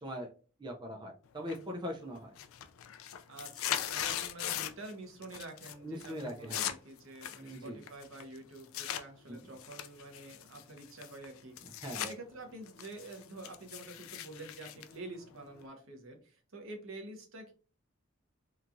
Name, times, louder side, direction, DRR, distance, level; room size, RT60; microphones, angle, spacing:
voice 1, 0.6-2.3 5.8-6.7 7.4-7.8 9.3-9.5 11.6-12.1, equal, 20° right, 1 dB, 0.4 m, -41 dB
sound 1, 1.5-1.9 2.2-4.9 5.2-5.7 6.0-9.0 9.6-12.1 12.5-15.7, left 11 dB, 85° left, 0.3 m, -39 dB
voice 2, 3.3-17.5, right 2 dB, 85° right, 4 dB, 0.8 m, -48 dB
3.0 x 2.3 x 2.5 m, 0.37 s
head